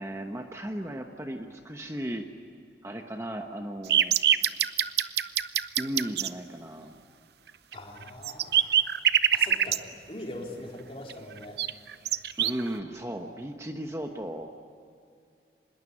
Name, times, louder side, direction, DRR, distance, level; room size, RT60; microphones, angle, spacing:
voice 1, 0.0-2.3 2.8-4.2 5.8-6.9 12.4-14.5, right 1 dB, 15° right, 4 dB, 1.1 m, -35 dB
sound 1, 3.9-6.3 7.7-7.8 8.0-9.8 11.1-11.2 11.6-12.7, right 10 dB, 70° right, 0.8 m, -24 dB
voice 2, 7.7-8.7 9.3-9.8 10.1-11.6, left 1 dB, 35° left, 0 dB, 4.1 m, -41 dB
25.0 x 21.0 x 9.9 m, 2.4 s
head